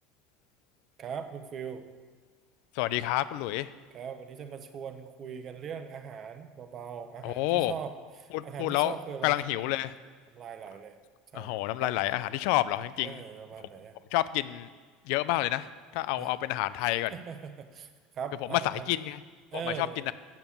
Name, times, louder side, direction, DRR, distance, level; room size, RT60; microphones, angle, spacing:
voice 1, 1.0-1.8 3.9-9.3 10.3-11.0 11.3-11.9 13.0-14.0 16.2-16.3 17.1-17.9 18.1-18.9 19.5-20.0, right 7 dB, 35° right, 8 dB, 0.8 m, -40 dB
voice 2, 2.8-3.7 7.2-7.7 8.3-8.9 9.2-9.9 11.3-13.2 14.1-14.7 15.1-15.7 15.9-17.1 18.5-19.2 19.8-20.1, left 16 dB, 70° left, 16 dB, 0.4 m, -29 dB
7.9 x 7.2 x 7.0 m, 1.5 s
cardioid pair, 145°, 0 cm